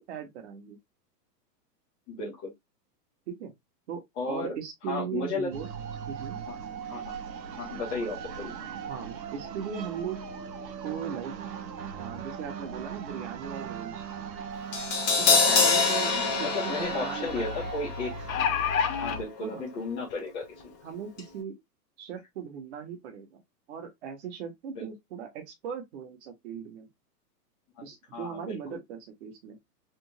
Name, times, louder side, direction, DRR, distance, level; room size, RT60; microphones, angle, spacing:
voice 1, 0.1-0.8 3.3-3.5 3.9-5.7 6.1-6.4 8.9-10.2 10.8-11.3 11.9-14.0 15.2-17.7 19.4-19.6 20.8-21.6 22.0-23.4 23.7-26.9 27.8-29.6, right 7 dB, 40° right, 1.2 m, -38 dB
voice 2, 2.1-2.5 4.2-4.6 4.9-5.5 6.5-6.6 6.9-7.2 7.6-8.5 15.5-15.6 16.1-18.1 19.0-20.4 24.8-24.9 27.8-27.9 28.1-28.8, left 3 dB, 10° left, 0.5 m, -34 dB
sound 1, 5.5-19.2, right 5 dB, 85° right, 1.1 m, -39 dB
Crash cymbal, 14.7-20.9 21.2-21.3, left 4 dB, 35° left, 1.1 m, -28 dB
sound 2, 15.9-16.0 16.3-16.4 18.0-19.2 20.1-20.2 20.6-20.7, left 7 dB, 55° left, 0.8 m, -27 dB
3.6 x 2.5 x 2.9 m
hypercardioid pair, 155°, 50 cm